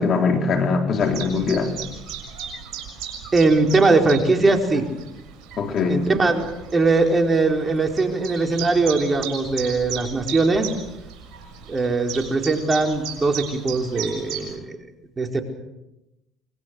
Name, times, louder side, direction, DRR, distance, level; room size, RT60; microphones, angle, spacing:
voice 1, 0.0-1.7 5.6-6.0, left 4 dB, 50° left, 4 dB, 3.8 m, -21 dB
Chirp tweet, 1.0-14.6, right 8 dB, 65° right, 6.8 m, -36 dB
voice 2, 3.3-4.9 5.9-6.5 6.7-10.7 11.7-14.8 15.2-15.4, right 3 dB, 30° right, 3 dB, 4.8 m, -20 dB
26.0 x 23.0 x 6.5 m, 0.92 s
hypercardioid pair, 65°, 0 cm